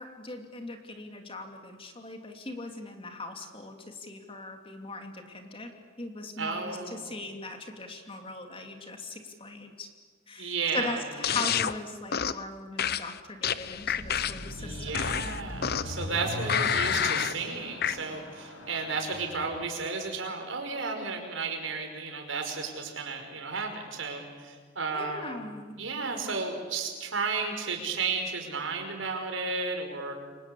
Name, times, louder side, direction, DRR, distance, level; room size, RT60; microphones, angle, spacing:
voice 1, 0.0-5.7 6.0-9.9 10.3-15.4 24.9-25.7, left 2 dB, 25° left, 4 dB, 2.8 m, -39 dB
voice 2, 6.4-7.0 10.4-11.4 14.6-25.4 25.8-30.3, right 4 dB, 75° right, 4 dB, 5.4 m, -33 dB
sound 1, 11.2-11.7 12.1-12.4 12.8-14.5 14.9-16.0 16.5-17.4 17.8-18.0, left 8 dB, 50° left, 0.8 m, -28 dB
Car passing by / Accelerating revving vroom, 13.6-19.6, left 1 dB, 85° left, 5.8 m, -40 dB
29.0 x 24.0 x 8.5 m, 1.5 s
head